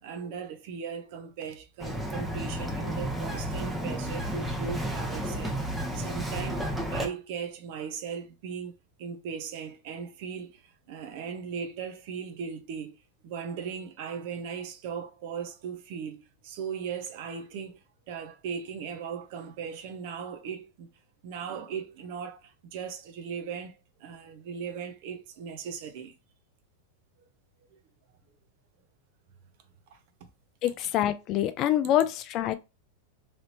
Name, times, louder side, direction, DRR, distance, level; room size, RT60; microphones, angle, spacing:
voice 1, 0.0-5.6 5.9-13.0 13.2-17.8 18.1-20.9 21.2-26.1 27.7-27.8 29.9-30.0, right 6 dB, 60° right, 0.7 m, -38 dB
Bird vocalization bird call bird song, 1.8-7.1, right 1 dB, 5° right, 0.8 m, -32 dB
voice 2, 30.6-32.5, left 12 dB, 45° left, 0.3 m, -26 dB
3.2 x 2.6 x 2.9 m
hypercardioid pair, 115°, 0 cm